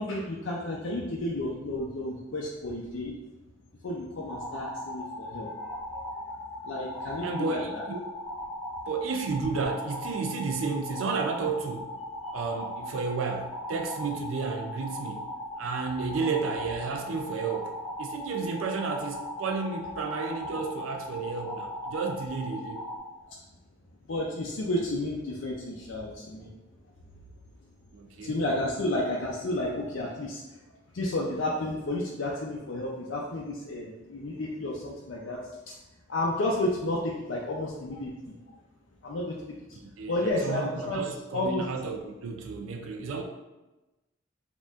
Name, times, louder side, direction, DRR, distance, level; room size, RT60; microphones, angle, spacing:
voice 1, 0.0-3.1 3.8-5.5 5.9-6.0 6.6-7.8 12.2-12.4 24.1-26.5 28.2-30.4 30.9-35.4 35.7-35.8 36.1-38.4 39.0-39.4 40.1-41.0 41.3-41.6, left 1 dB, 70° left, -4 dB, 0.5 m, -31 dB
sound 1, 4.3-23.0, left 1 dB, ahead, 0.6 m, -38 dB
voice 2, 7.2-8.0 8.9-11.9 12.3-15.3 15.6-22.8 27.9-28.4 39.8-43.2, right 4 dB, 90° right, 3 dB, 0.4 m, -32 dB
4.2 x 2.9 x 2.4 m, 1.1 s
head